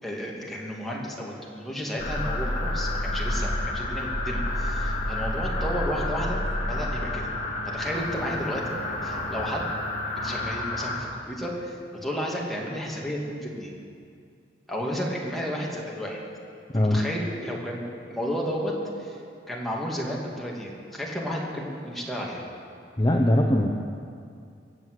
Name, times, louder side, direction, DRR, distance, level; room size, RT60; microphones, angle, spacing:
voice 1, 0.0-6.4 6.7-7.3 7.6-9.7 10.2-13.7 14.7-16.2 16.7-19.2 19.5-22.4, equal, ahead, -4 dB, 2.6 m, -32 dB
sound 1, 2.0-11.0, left 1 dB, 45° left, 2.8 m, -29 dB
voice 2, 23.0-23.7, left 1 dB, 25° left, 1 dB, 0.8 m, -21 dB
23.0 x 7.7 x 8.2 m, 2.4 s
head